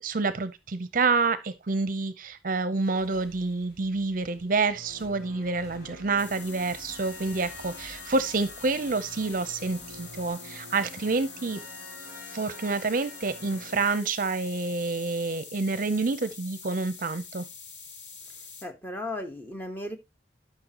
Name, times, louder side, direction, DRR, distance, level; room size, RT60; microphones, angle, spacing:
voice 1, 0.0-11.6 12.3-17.5, right 3 dB, 50° right, 0.6 m, -28 dB
Motorcycle / Engine, 2.8-10.3, equal, 50° left, 5.4 m, -55 dB
sound 1, 4.7-13.8, left 1 dB, 65° left, 3.3 m, -47 dB
sound 2, 6.2-18.6, left 5 dB, 85° left, 1.7 m, -45 dB
voice 2, 18.6-20.0, left 1 dB, 10° left, 1.1 m, -35 dB
12.0 x 5.9 x 2.9 m
head